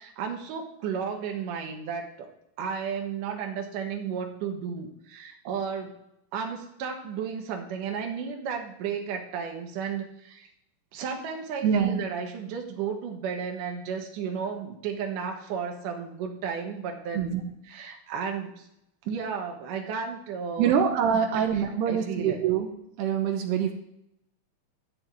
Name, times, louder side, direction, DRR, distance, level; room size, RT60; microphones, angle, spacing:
voice 1, 0.0-2.3 2.6-5.9 6.3-10.5 10.9-18.7 19.0-20.8 21.1-21.4 21.9-22.4, right 6 dB, 65° right, 3 dB, 2.4 m, -33 dB
voice 2, 11.6-12.0 17.1-17.4 20.6-22.7 23.0-23.7, right 8 dB, 80° right, 4 dB, 2.9 m, -24 dB
12.5 x 4.5 x 8.1 m, 0.80 s
omnidirectional pair, 4.7 m